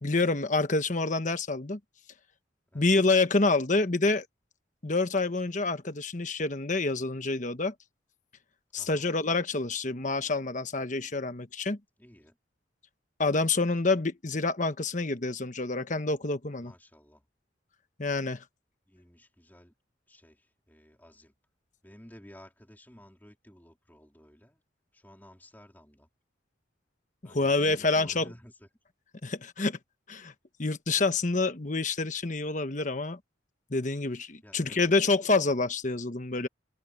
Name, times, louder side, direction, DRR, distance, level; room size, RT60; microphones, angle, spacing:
voice 1, 0.0-1.8 2.7-4.3 4.8-7.7 8.7-11.8 13.2-16.7 18.0-18.4 27.2-28.3 29.2-29.8 30.1-30.3 30.6-33.2 33.7-36.5, left 3 dB, 40° left, 1.2 m, -27 dB
voice 2, 8.8-9.1 12.0-12.4 16.6-17.2 18.9-19.7 20.1-21.3 21.8-24.6 24.9-26.1 27.2-28.7 34.4-34.9, equal, 10° left, 3.6 m, -54 dB
head